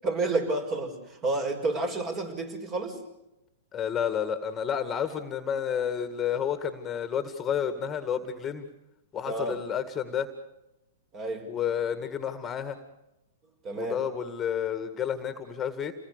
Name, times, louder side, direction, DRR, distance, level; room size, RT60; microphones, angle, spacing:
voice 1, 0.0-3.0 9.2-9.6 11.1-11.5 13.6-14.0, right 2 dB, 30° right, 6 dB, 6.1 m, -30 dB
voice 2, 3.7-8.7 9.1-10.3 11.5-12.8 13.7-15.9, left 8 dB, 20° left, 10 dB, 2.0 m, -30 dB
28.5 x 20.5 x 6.7 m, 0.91 s
hypercardioid pair, 125°, 0 cm